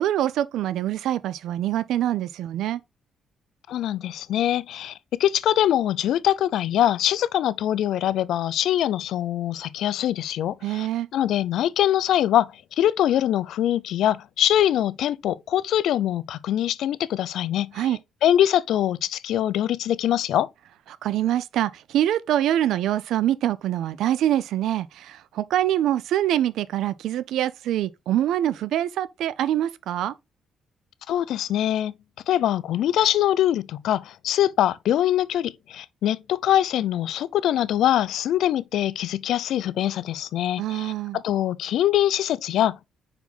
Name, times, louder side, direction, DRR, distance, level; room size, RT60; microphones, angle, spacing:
voice 1, 0.0-2.8 10.6-11.1 17.7-18.0 21.0-30.1 40.6-41.2, right 12 dB, 80° right, 0.5 m, -25 dB
voice 2, 3.7-10.9 11.1-12.5 12.8-17.7 18.2-20.5 31.1-31.9 32.3-42.9, left 11 dB, 80° left, 0.4 m, -23 dB
5.3 x 4.8 x 4.2 m
cardioid pair, 90°, 0 cm